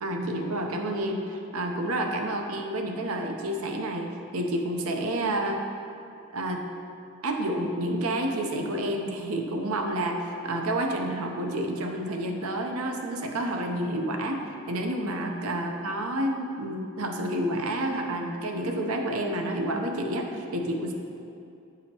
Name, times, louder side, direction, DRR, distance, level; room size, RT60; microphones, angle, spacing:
voice 1, 0.0-5.6 6.3-6.6 7.2-20.9, right 1 dB, 75° right, 3 dB, 0.7 m, -29 dB
9.4 x 4.9 x 2.8 m, 2.7 s
head